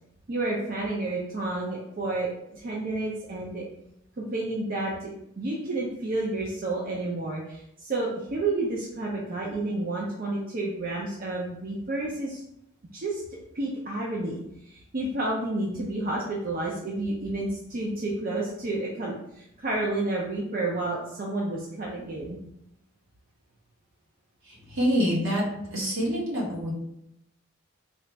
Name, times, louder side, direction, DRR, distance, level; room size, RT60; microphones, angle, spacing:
voice 1, 0.3-3.6 4.2-12.4 12.9-13.2 13.5-22.4, right 2 dB, 40° right, -3 dB, 0.5 m, -30 dB
voice 2, 24.4-25.4 25.7-26.7, equal, 75° right, -5 dB, 1.5 m, -26 dB
3.9 x 2.4 x 3.3 m, 0.80 s
head